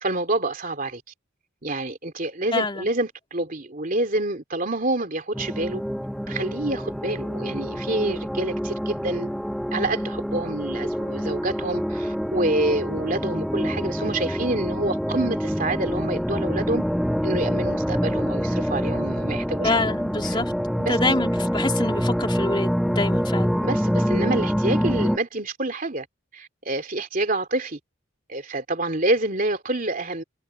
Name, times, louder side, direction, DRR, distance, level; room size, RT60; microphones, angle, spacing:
voice 1, 0.0-1.0 1.6-5.8 6.3-9.4 9.7-16.8 17.2-19.8 20.3-20.4 20.8-21.3 23.6-26.1 26.3-27.8 28.3-30.2, right 2 dB, 40° right, 3.2 m, -27 dB
voice 2, 2.5-2.9 19.6-20.5 20.9-23.5, left 2 dB, 25° left, 3.3 m, -26 dB
sound 1, 5.3-25.2, equal, ahead, 1.2 m, -26 dB
head